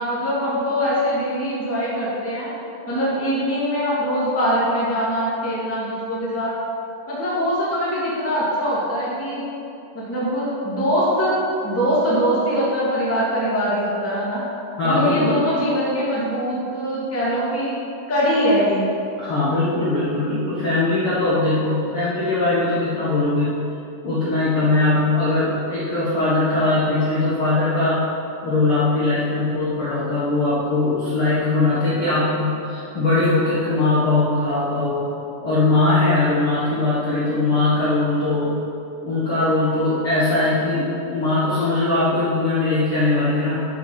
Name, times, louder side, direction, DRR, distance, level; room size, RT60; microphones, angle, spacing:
voice 1, 0.0-2.5 2.9-6.5 7.1-9.4 9.9-11.3 11.6-14.4 14.8-17.7 18.1-18.9, equal, 10° left, -8 dB, 0.9 m, -22 dB
voice 2, 14.8-15.4 19.2-23.6 24.0-28.1 28.4-35.1 35.4-38.6 39.0-43.6, left 2 dB, 70° left, -8 dB, 1.2 m, -20 dB
11.5 x 6.2 x 4.8 m, 2.7 s
omnidirectional pair, 4.9 m